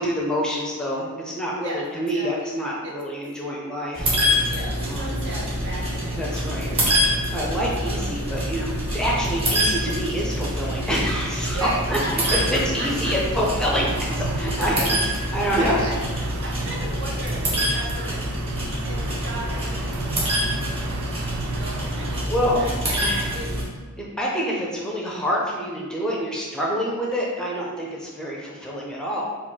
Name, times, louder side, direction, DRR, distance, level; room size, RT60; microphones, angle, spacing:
voice 1, 0.0-4.1 4.8-5.1 6.2-6.7 7.3-14.8 15.3-15.9 22.3-22.6 23.0-23.3 24.0-29.2, equal, 5° left, -4 dB, 0.6 m, -26 dB
voice 2, 2.1-2.5 2.8-2.9 4.5-6.2 6.6-7.0 7.3-7.6 7.9-8.1 11.5-13.1 14.6-14.9 15.6-16.0 16.4-18.2 18.8-20.9 21.4-23.0 23.3-23.5, right 1 dB, 55° right, -2 dB, 0.9 m, -36 dB
sound 1, 3.9-23.6, equal, 30° right, 1.2 m, -26 dB
sound 2, 13.9-22.3, right 5 dB, 80° right, 0.3 m, -38 dB
4.2 x 2.5 x 4.5 m, 1.4 s
head